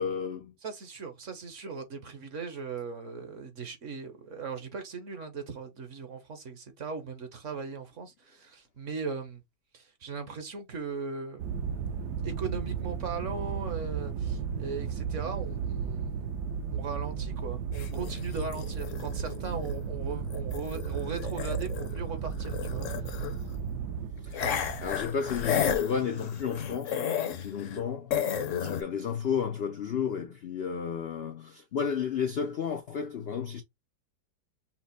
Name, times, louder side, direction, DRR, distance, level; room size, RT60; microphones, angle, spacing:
voice 1, 0.0-0.6 24.2-28.3 28.6-33.6, left 7 dB, 75° left, 0.5 m, -33 dB
voice 2, 0.6-9.4 9.7-11.5 12.2-16.3 16.7-22.9, right 5 dB, 50° right, 1.1 m, -38 dB
sound 1, 11.4-24.9, right 6 dB, 70° right, 1.3 m, -34 dB
sound 2, 17.7-22.0 22.3-23.5 24.3-27.8 28.1-28.8, left 8 dB, 60° left, 0.9 m, -33 dB
5.7 x 2.0 x 4.1 m
omnidirectional pair, 1.8 m